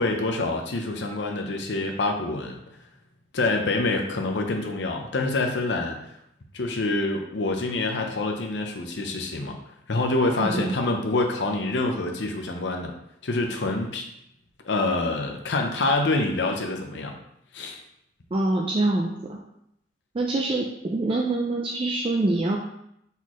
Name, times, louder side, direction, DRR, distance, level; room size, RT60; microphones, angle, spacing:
voice 1, 0.0-2.6 3.3-6.0 6.5-9.6 9.9-12.9 13.2-14.1 14.6-17.2 17.5-17.8, left 2 dB, 90° left, 3 dB, 0.7 m, -26 dB
voice 2, 10.4-10.7 18.3-19.4 20.1-22.6, right 2 dB, 30° right, 0 dB, 0.4 m, -25 dB
4.1 x 4.0 x 3.0 m, 0.77 s
head